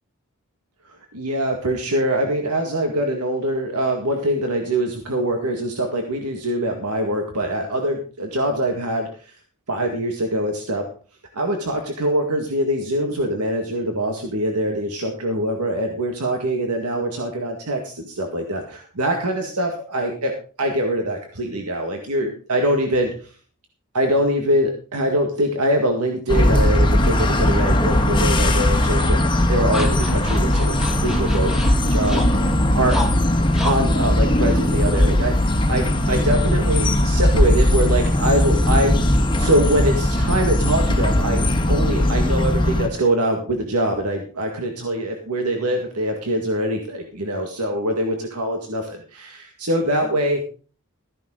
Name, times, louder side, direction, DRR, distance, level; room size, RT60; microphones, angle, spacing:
voice 1, 1.1-9.3 9.7-10.8 11.3-20.3 20.6-23.1 23.9-31.5 31.9-33.0 33.6-39.1 39.4-50.4, right 1 dB, 90° right, 3 dB, 2.0 m, -23 dB
sound 1, 26.3-42.9, left 1 dB, 20° left, 1.4 m, -19 dB
sound 2, 28.9-35.4, left 1 dB, 5° right, 1.7 m, -33 dB
14.0 x 10.5 x 3.8 m, 0.39 s
head